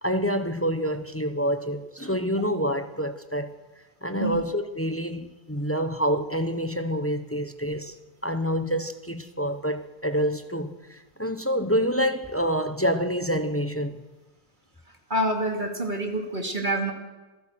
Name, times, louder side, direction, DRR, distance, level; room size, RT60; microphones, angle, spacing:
voice 1, 0.0-3.5 4.0-8.0 8.2-14.0, equal, 10° left, 9 dB, 0.6 m, -27 dB
voice 2, 15.1-16.9, right 1 dB, 30° right, 3 dB, 2.5 m, -27 dB
27.0 x 15.5 x 6.4 m, 1.2 s
omnidirectional pair, 1.8 m